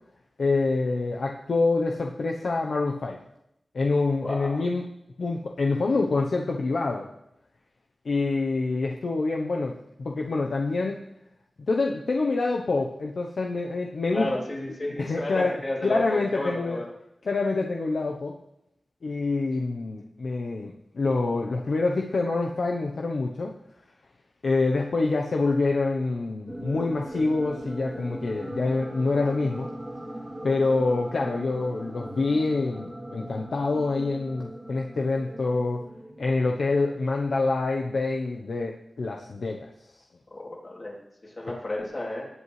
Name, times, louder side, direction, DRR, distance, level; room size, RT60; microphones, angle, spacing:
voice 1, 0.4-3.2 3.7-4.8 5.2-7.1 8.0-11.0 11.6-14.3 15.0-15.5 15.8-16.8 17.2-18.4 19.0-23.5 24.4-29.7 30.4-35.8 36.2-39.7, left 3 dB, 70° left, 1 dB, 0.8 m, -26 dB
voice 2, 4.2-4.6 14.1-16.9 40.3-42.3, left 1 dB, 40° left, -4 dB, 3.2 m, -32 dB
sound 1, 26.5-36.8, right 1 dB, 10° right, 2.0 m, -39 dB
18.0 x 8.3 x 3.3 m, 0.81 s
wide cardioid pair, 100°, 0 cm